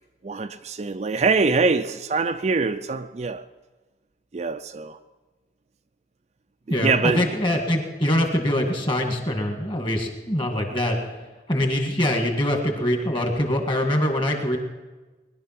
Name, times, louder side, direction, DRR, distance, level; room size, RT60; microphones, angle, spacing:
voice 1, 0.2-3.4 4.3-5.0 6.7-7.3, right 4 dB, 35° right, 9 dB, 0.4 m, -24 dB
voice 2, 6.7-11.1 11.5-14.6, left 1 dB, 25° left, 4 dB, 2.0 m, -23 dB
20.5 x 11.5 x 5.9 m, 1.2 s
head